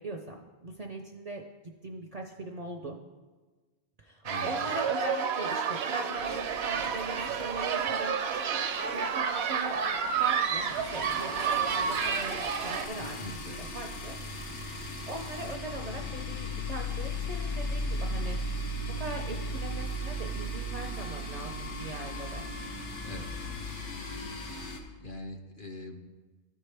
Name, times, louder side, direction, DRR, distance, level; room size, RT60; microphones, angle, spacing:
voice 1, 0.0-1.4 1.8-3.0 4.0-8.6 8.9-9.8 10.2-14.2 14.5-18.4 18.9-22.5, right 2 dB, 50° right, 2 dB, 0.5 m, -40 dB
voice 2, 4.2-4.7 13.0-13.6 23.0-23.6 25.0-26.1, left 1 dB, 55° left, 3 dB, 0.8 m, -43 dB
sound 1, 4.3-12.9, right 6 dB, 70° right, 0.8 m, -30 dB
sound 2, 6.1-7.9 8.2-8.4 8.7-8.8 9.0-24.8, left 1 dB, 90° left, 1.2 m, -37 dB
13.0 x 4.5 x 3.3 m, 1.3 s
omnidirectional pair, 1.2 m